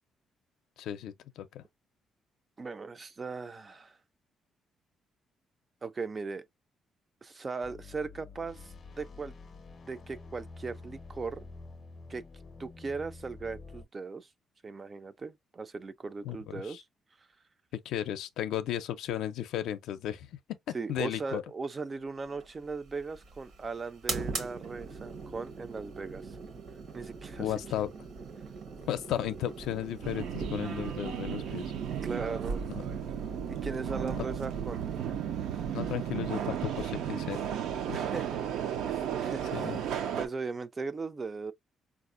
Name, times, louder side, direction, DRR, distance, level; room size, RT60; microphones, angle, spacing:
voice 1, 0.8-1.6 16.2-16.8 17.8-21.4 27.4-27.9 28.9-31.7 32.7-32.8 34.2-34.3 35.7-37.4 37.9-38.0 39.5-39.8, left 11 dB, 90° left, 0.4 m, -35 dB
voice 2, 2.6-4.0 5.8-6.4 7.2-9.3 9.9-11.5 12.1-12.2 12.6-14.3 14.6-16.8 20.7-26.4 26.9-27.5 32.0-32.6 33.6-34.8 37.9-38.4 38.8-39.8 40.2-41.5, right 4 dB, 25° right, 0.3 m, -38 dB
sound 1, 7.6-13.8, left 3 dB, 35° left, 0.5 m, -48 dB
sound 2, 22.2-37.5, right 4 dB, 65° right, 0.9 m, -43 dB
Subway metro underground, 30.0-40.3, right 8 dB, 90° right, 0.5 m, -34 dB
4.2 x 2.4 x 2.5 m
cardioid pair, 140°, 0 cm